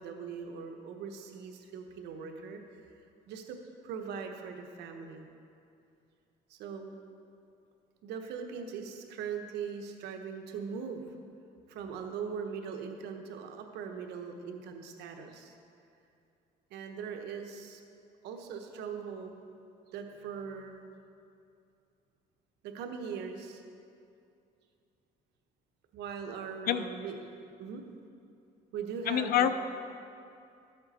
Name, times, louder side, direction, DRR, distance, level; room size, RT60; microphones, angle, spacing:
voice 1, 0.0-2.6 3.3-5.3 6.5-7.0 8.0-11.0 11.7-15.5 16.7-17.8 18.2-19.3 19.9-20.8 22.6-23.6 25.9-27.8 28.7-29.5, right 6 dB, 80° right, 4 dB, 1.0 m, -40 dB
voice 2, 29.1-29.5, left 11 dB, 60° left, 11 dB, 0.6 m, -26 dB
12.5 x 7.8 x 4.2 m, 2.5 s
cardioid pair, 110°, 17 cm